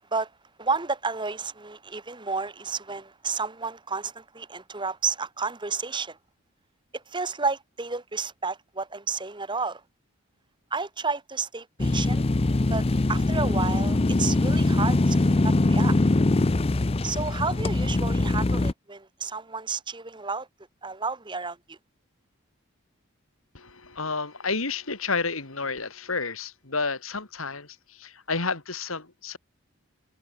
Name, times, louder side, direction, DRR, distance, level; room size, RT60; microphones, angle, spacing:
voice 1, 0.6-6.2 6.9-9.8 10.7-12.2 12.7-16.0 17.0-20.5 20.8-21.8, right 4 dB, 20° right, 1.6 m, -31 dB
sound 1, 11.8-18.7, left 2 dB, 30° left, 0.5 m, -22 dB
voice 2, 23.5-29.4, left 4 dB, 80° left, 3.5 m, -31 dB
head